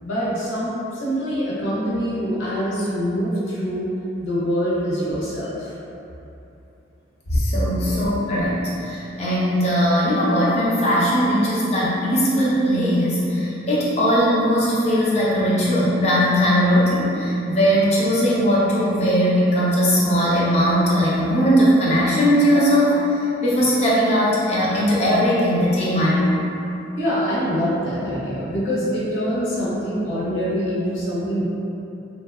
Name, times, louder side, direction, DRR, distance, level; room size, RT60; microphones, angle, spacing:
voice 1, 0.0-3.9 4.2-5.7 7.3-7.4 27.0-31.4, equal, 85° left, -8 dB, 0.7 m, -24 dB
voice 2, 7.3-26.4, equal, 35° left, -7 dB, 0.5 m, -19 dB
2.7 x 2.1 x 2.3 m, 2.8 s
head